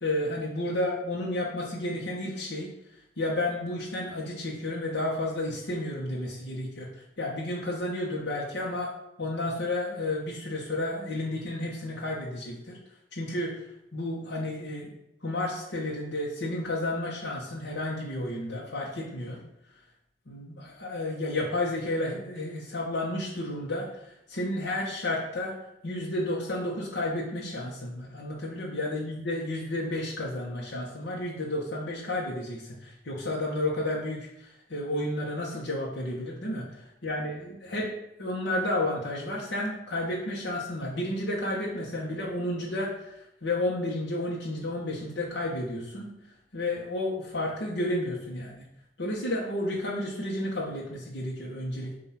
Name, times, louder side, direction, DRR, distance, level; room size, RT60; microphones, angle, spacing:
voice 1, 0.0-2.7 3.2-8.9 9.2-12.8 13.1-13.7 13.9-14.9 15.2-19.4 20.3-25.5 25.8-37.9 38.2-46.1 46.5-48.6 49.0-51.9, left 1 dB, 85° left, -4 dB, 1.1 m, -31 dB
7.8 x 2.7 x 5.8 m, 0.84 s
head